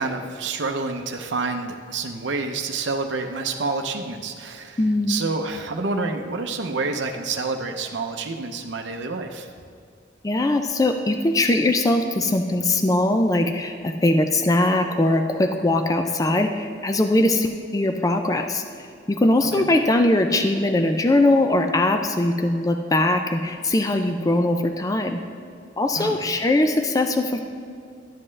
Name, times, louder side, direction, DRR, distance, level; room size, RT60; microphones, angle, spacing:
voice 1, 0.0-4.8 5.1-9.5 19.6-19.7 26.0-26.2, right 3 dB, 70° right, 4 dB, 0.6 m, -28 dB
voice 2, 4.8-5.2 10.2-25.2 25.8-27.4, left 1 dB, 20° left, 5 dB, 0.4 m, -21 dB
12.0 x 7.4 x 3.3 m, 2.4 s
head